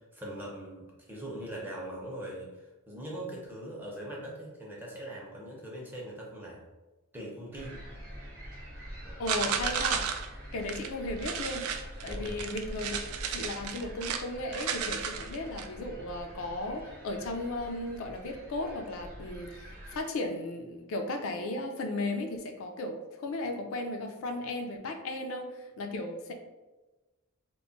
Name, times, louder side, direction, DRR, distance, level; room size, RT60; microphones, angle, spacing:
voice 1, 0.0-6.7 7.1-7.8 9.0-9.2 12.0-12.4, right 1 dB, 10° right, -3 dB, 0.5 m, -41 dB
sound 1, 7.5-20.0, equal, 45° right, 0.8 m, -45 dB
voice 2, 9.2-10.0 10.5-11.7 12.0-26.3, left 2 dB, 65° left, 3 dB, 0.4 m, -35 dB
sound 2, 9.3-10.3 10.6-10.9 11.2-14.2 14.5-15.7, right 7 dB, 75° right, 0.3 m, -33 dB
2.2 x 2.1 x 3.7 m, 1.1 s
head